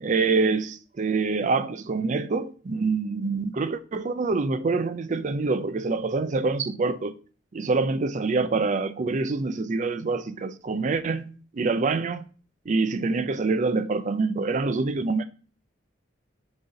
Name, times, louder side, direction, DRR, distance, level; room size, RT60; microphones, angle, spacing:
voice 1, 0.0-7.1 7.6-12.3 12.7-15.2, right 3 dB, 40° right, 0.4 m, -26 dB
6.7 x 4.1 x 3.8 m
head